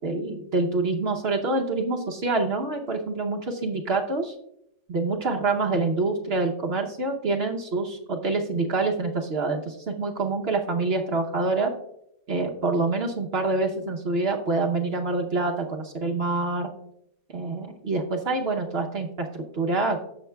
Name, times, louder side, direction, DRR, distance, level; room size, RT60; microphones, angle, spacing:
voice 1, 0.0-4.3 4.9-11.7 12.3-16.7 17.3-20.0, right 3 dB, 50° right, 2 dB, 0.8 m, -26 dB
15.5 x 5.7 x 2.2 m, 0.77 s
omnidirectional pair, 1.7 m